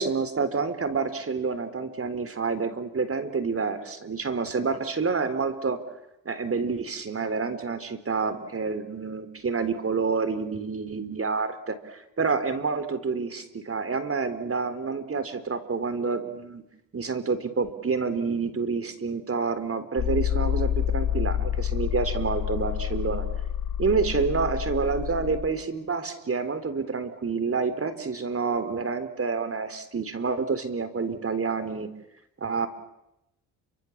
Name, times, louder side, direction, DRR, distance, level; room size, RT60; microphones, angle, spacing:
voice 1, 0.0-5.8 6.3-16.6 16.9-23.2 23.8-31.9 32.4-32.7, right 4 dB, 35° right, 11 dB, 3.7 m, -28 dB
sound 1, 20.0-25.5, left 10 dB, 75° left, 3.2 m, -28 dB
30.0 x 24.5 x 7.3 m, 0.87 s
cardioid pair, 75°, 38 cm